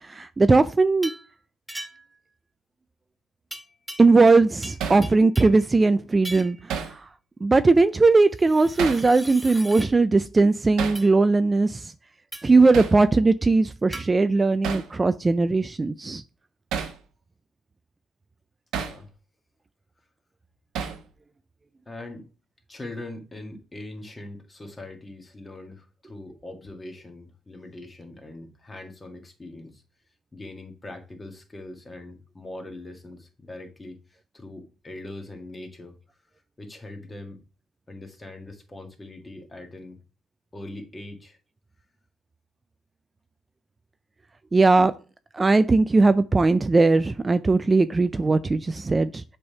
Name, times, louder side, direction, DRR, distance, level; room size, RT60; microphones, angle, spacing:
voice 1, 0.1-1.1 4.0-6.6 6.9-7.0 7.4-11.9 12.4-16.2 44.5-44.9 45.3-49.2, right 3 dB, 25° right, 0.3 m, -19 dB
sound 1, 1.0-1.3 1.7-2.2 3.5-4.4 4.6-5.6 6.2-6.6 8.3-9.9 11.0-11.1 12.3-12.6 13.9-14.1, right 1 dB, 5° right, 1.0 m, -39 dB
Hammer, 4.8-5.1 6.7-7.0 8.8-9.1 10.8-11.0 12.7-13.0 14.6-14.9 16.7-17.0 18.7-19.0 20.7-21.1, right 7 dB, 90° right, 0.9 m, -30 dB
voice 2, 18.7-19.1 21.8-22.3 22.7-29.8 30.3-36.2 36.6-37.4 37.9-40.0 40.5-41.4, left 2 dB, 20° left, 1.6 m, -41 dB
6.9 x 3.4 x 5.5 m
cardioid pair, 90°, 0 cm